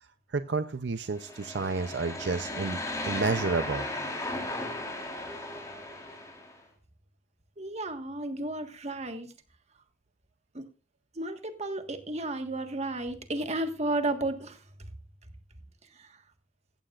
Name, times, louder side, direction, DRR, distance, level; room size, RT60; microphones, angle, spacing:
voice 1, 0.3-2.8 3.0-3.9, right 4 dB, 65° right, 10 dB, 0.6 m, -30 dB
sound 1, 1.1-6.6, left 1 dB, 20° left, 3.9 m, -36 dB
voice 2, 7.6-9.3 10.5-10.7 11.1-14.6 16.0-16.2, right 2 dB, 40° right, 7 dB, 1.5 m, -33 dB
15.5 x 15.0 x 2.5 m, 0.35 s
head